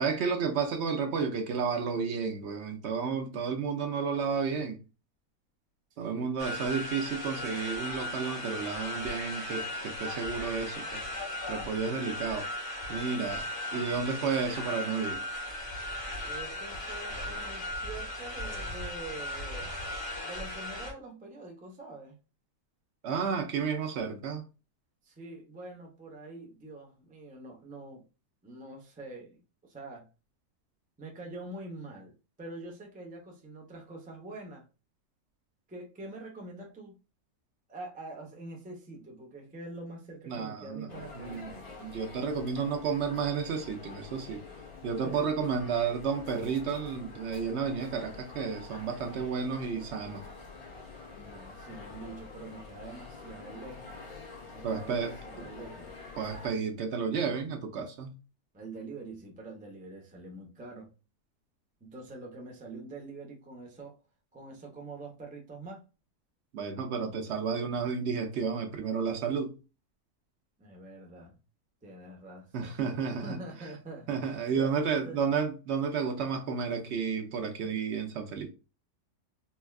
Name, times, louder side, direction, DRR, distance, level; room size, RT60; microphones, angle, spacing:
voice 1, 0.0-4.8 6.0-11.0 11.5-12.5 12.9-15.2 23.0-24.4 40.3-44.4 44.8-50.3 54.6-55.5 56.2-58.1 66.5-69.5 72.5-73.4 74.1-78.5, right 6 dB, 65° right, 0.7 m, -32 dB
voice 2, 5.9-6.3 16.2-19.7 20.2-22.2 25.0-28.0 28.4-30.1 31.0-34.7 35.7-37.0 37.7-41.5 45.0-45.3 51.1-54.0 54.5-55.9 58.5-60.9 61.8-64.0 64.3-65.8 70.6-71.4 71.8-72.8 73.2-74.2 74.6-74.7 75.0-75.2, right 2 dB, 10° right, 0.3 m, -45 dB
sound 1, 6.4-20.9, left 1 dB, 25° left, 0.7 m, -37 dB
sound 2, 40.9-56.5, left 4 dB, 70° left, 1.5 m, -47 dB
4.2 x 2.2 x 2.3 m
omnidirectional pair, 1.6 m